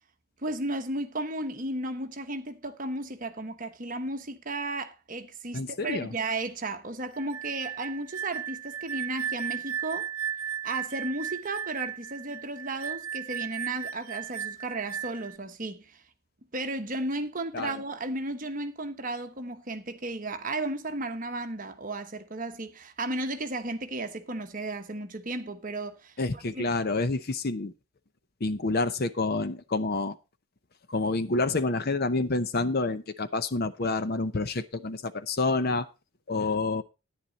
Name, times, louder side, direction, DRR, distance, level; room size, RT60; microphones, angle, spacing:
voice 1, 0.4-10.1 10.6-16.0 16.5-26.6, right 2 dB, 35° right, 1.1 m, -34 dB
voice 2, 5.5-6.1 17.5-17.7 26.2-27.7 28.4-30.2 30.9-35.9 36.3-36.8, left 3 dB, 45° left, 0.7 m, -28 dB
sound 1, 7.1-15.4, right 8 dB, 75° right, 0.8 m, -35 dB
10.5 x 9.9 x 4.0 m
head